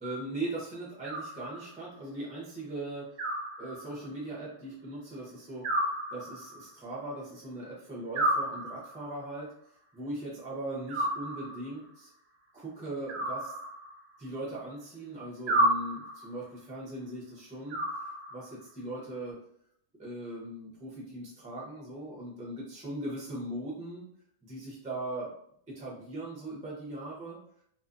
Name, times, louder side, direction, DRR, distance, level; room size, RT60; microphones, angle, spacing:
voice 1, 0.0-3.1 3.6-5.7 6.1-9.5 9.9-12.1 12.5-13.5 14.2-17.8 18.3-19.4 20.0-24.0 24.4-25.3 25.7-27.4, right 1 dB, 10° right, -5 dB, 0.4 m, -39 dB
Animal, 1.0-1.9 3.2-4.2 5.6-6.7 8.1-9.2 10.9-11.8 13.1-14.2 15.5-16.4 17.7-18.6, right 1 dB, 60° right, 0.7 m, -32 dB
2.5 x 2.4 x 2.5 m, 0.67 s
omnidirectional pair, 1.6 m